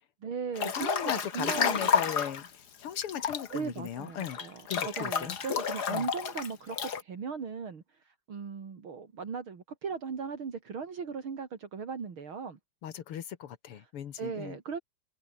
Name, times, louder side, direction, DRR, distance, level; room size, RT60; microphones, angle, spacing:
voice 1, 0.2-2.1 3.5-12.6 13.8-13.9 14.2-14.8, right 6 dB, 70° right, 3.5 m, -38 dB
Breathing / Bathtub (filling or washing) / Splash splatter, 0.6-2.5 3.0-7.0, left 7 dB, 50° left, 2.1 m, -31 dB
voice 2, 0.7-2.5 2.8-4.4 4.7-5.4 5.9-6.1 12.8-14.6, left 9 dB, 85° left, 2.4 m, -37 dB
omnidirectional pair, 2.4 m